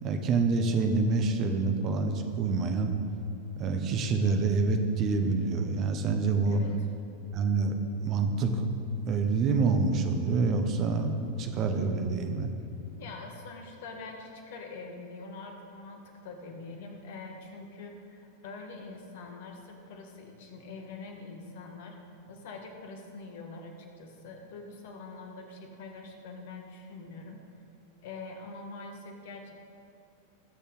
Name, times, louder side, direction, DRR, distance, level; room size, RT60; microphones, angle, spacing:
voice 1, 0.0-2.9 3.6-6.6 7.3-7.8 8.0-8.7 9.1-12.5, right 4 dB, 35° right, 5 dB, 1.1 m, -27 dB
voice 2, 6.4-6.9 12.9-21.9 22.3-27.4 28.0-29.5, left 3 dB, 50° left, 3 dB, 1.6 m, -44 dB
20.5 x 6.9 x 4.0 m, 2.6 s
figure-of-eight pair, 90°, 0 cm